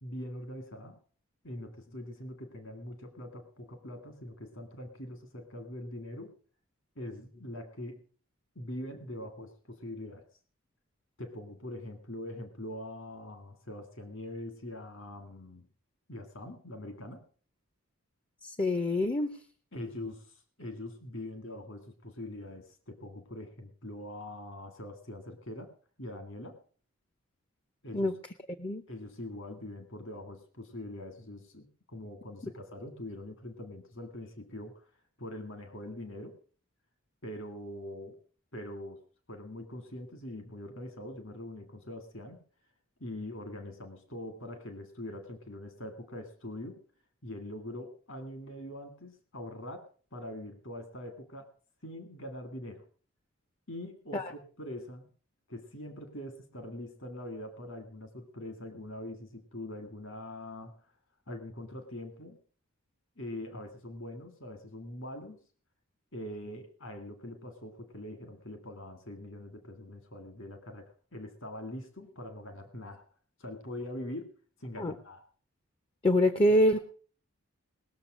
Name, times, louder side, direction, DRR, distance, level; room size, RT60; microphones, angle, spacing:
voice 1, 0.0-1.0 1.4-6.4 7.0-8.0 8.6-10.3 11.2-15.7 16.1-17.2 19.7-25.7 26.0-26.6 27.8-28.1 28.9-34.8 35.2-36.4 37.2-38.2 38.5-39.0 39.3-42.4 43.0-46.8 47.2-51.5 51.8-52.9 53.7-55.1 55.5-60.9 61.3-62.4 63.2-65.4 66.1-73.0 73.4-74.3 74.6-75.2 76.5-76.8, left 1 dB, 60° left, 7 dB, 2.0 m, -43 dB
voice 2, 18.4-19.3 27.9-28.1 28.6-28.8 54.1-54.3 74.8-74.9 76.0-76.8, left 1 dB, 25° left, 11 dB, 0.7 m, -25 dB
19.5 x 6.9 x 6.1 m, 0.43 s
head